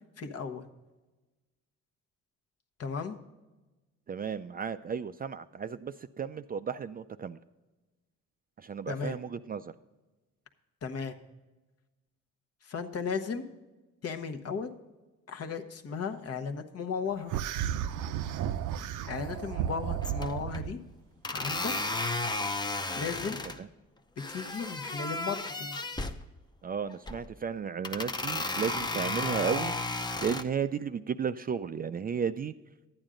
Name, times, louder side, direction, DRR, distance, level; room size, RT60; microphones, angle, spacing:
voice 1, 0.2-0.6 2.8-3.2 8.9-9.2 10.8-11.1 12.6-13.4 14.0-14.7 15.3-17.3 19.0-20.8 21.3-21.7 22.9-23.4 24.3-25.8, left 5 dB, 55° left, 6 dB, 1.0 m, -35 dB
voice 2, 4.1-7.4 8.6-9.7 23.6-23.7 26.6-29.7 30.2-32.5, right 7 dB, 30° right, 11 dB, 0.4 m, -34 dB
sound 1, 17.3-20.7, right 10 dB, 85° right, 0.6 m, -33 dB
sound 2, 19.3-19.7 20.0-20.6 21.2-23.6 24.2-26.2 26.9-27.3 27.8-30.4, left 2 dB, 15° left, 0.6 m, -33 dB
11.5 x 8.9 x 3.8 m, 1.1 s
cardioid pair, 90°, 30 cm